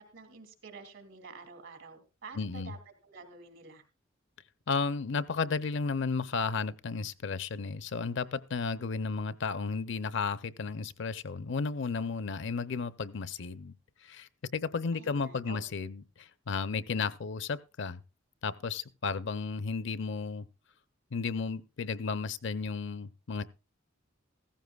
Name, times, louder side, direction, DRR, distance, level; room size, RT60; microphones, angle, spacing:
voice 1, 0.0-2.8 3.0-3.8 14.9-15.8, right 4 dB, 75° right, 2.5 m, -49 dB
voice 2, 2.3-2.7 4.7-13.7 14.0-18.0 18.4-20.4 21.1-23.4, left 4 dB, 65° left, 0.6 m, -33 dB
15.5 x 14.5 x 2.3 m
head